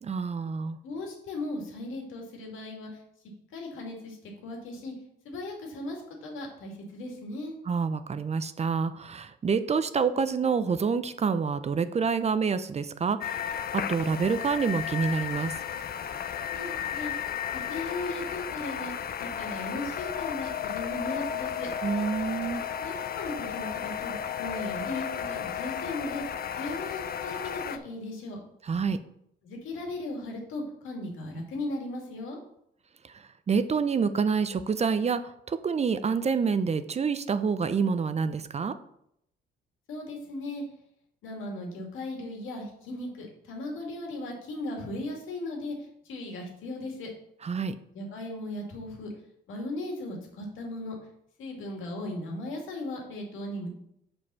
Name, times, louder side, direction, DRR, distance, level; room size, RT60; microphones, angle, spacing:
voice 1, 0.0-0.8 7.7-15.5 21.8-22.6 28.6-29.0 33.0-38.7 47.4-47.8, right 5 dB, 35° right, 11 dB, 0.5 m, -27 dB
voice 2, 0.8-3.0 3.5-4.2 4.4-4.9 5.2-7.5 16.5-17.1 17.5-21.7 22.8-24.1 24.4-26.2 26.6-28.4 29.4-32.4 39.9-40.6 41.2-45.8 46.0-47.1 47.9-49.1 49.5-50.9 51.4-53.7, left 2 dB, 85° left, 1 dB, 2.3 m, -37 dB
sound 1, 13.2-27.8, left 8 dB, 50° left, 0.6 m, -34 dB
6.4 x 5.2 x 5.5 m, 0.75 s
cardioid pair, 90°, 20 cm